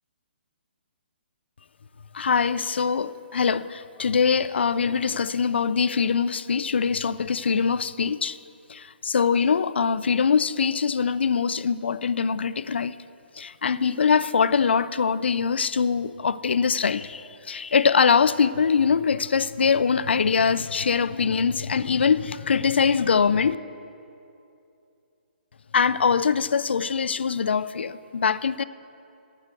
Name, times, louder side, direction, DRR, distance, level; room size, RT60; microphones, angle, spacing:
voice 1, 2.1-8.4 8.7-13.0 13.4-23.6 25.7-28.6, left 6 dB, 75° left, 0.4 m, -23 dB
9.1 x 7.4 x 8.2 m
hypercardioid pair, 145°, 6 cm